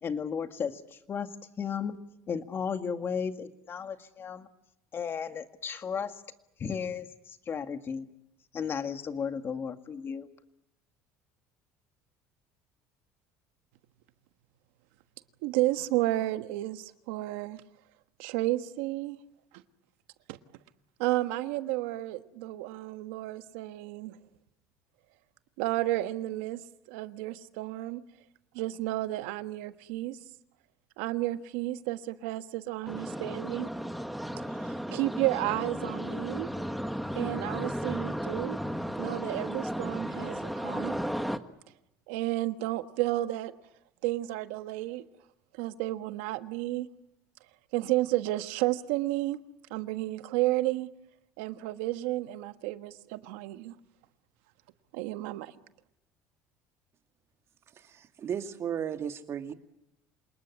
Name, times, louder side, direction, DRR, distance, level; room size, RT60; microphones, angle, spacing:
voice 1, 0.0-2.0 2.3-4.5 4.9-6.2 6.6-8.1 8.5-10.3, left 6 dB, 40° left, 8 dB, 2.0 m, -34 dB
voice 2, 15.4-17.6 18.2-19.2 20.3-20.4 21.0-24.2 25.6-26.6 26.9-28.0 28.5-30.2 31.0-33.7 34.4-36.5 37.1-38.6 39.0-41.0 42.1-43.5 44.0-45.1 45.5-46.9 47.7-49.4 49.7-50.9 51.4-53.7 54.9-55.5, right 17 dB, 85° right, 10 dB, 1.4 m, -32 dB
sound 1, 32.9-41.4, equal, ahead, 1.4 m, -34 dB
voice 3, 57.8-59.5, right 8 dB, 45° right, 7 dB, 2.2 m, -35 dB
27.5 x 19.5 x 9.7 m, 0.88 s
supercardioid pair, 105°, 6 cm